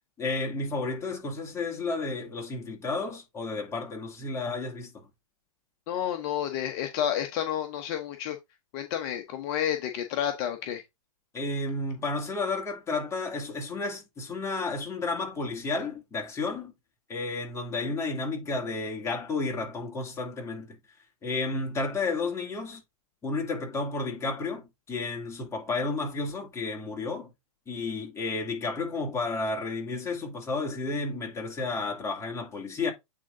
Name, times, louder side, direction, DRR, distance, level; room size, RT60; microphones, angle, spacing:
voice 1, 0.2-5.0 11.3-16.7 17.1-20.8 21.2-22.8 23.2-27.3 27.7-32.9, left 3 dB, 15° left, 2.7 m, -32 dB
voice 2, 5.9-8.4 8.7-10.8, left 10 dB, 40° left, 1.1 m, -30 dB
8.8 x 3.8 x 3.9 m
hypercardioid pair, 120°, 19 cm